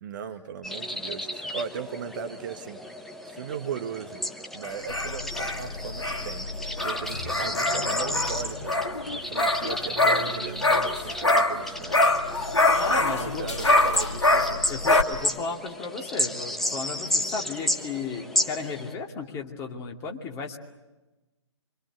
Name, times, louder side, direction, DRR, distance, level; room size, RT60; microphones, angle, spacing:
voice 1, 0.0-2.8 3.3-8.7 9.1-12.1 12.9-14.7, right 7 dB, 40° right, 8 dB, 1.6 m, -38 dB
sound 1, 0.6-18.9, left 1 dB, ahead, 1.0 m, -33 dB
sound 2, 4.6-11.7 11.9-15.0, left 2 dB, 65° left, 2.6 m, -24 dB
voice 2, 12.8-13.5 14.7-20.6, left 5 dB, 20° left, 1 dB, 2.5 m, -34 dB
26.5 x 25.0 x 8.0 m, 1.1 s
figure-of-eight pair, 135°, 15 cm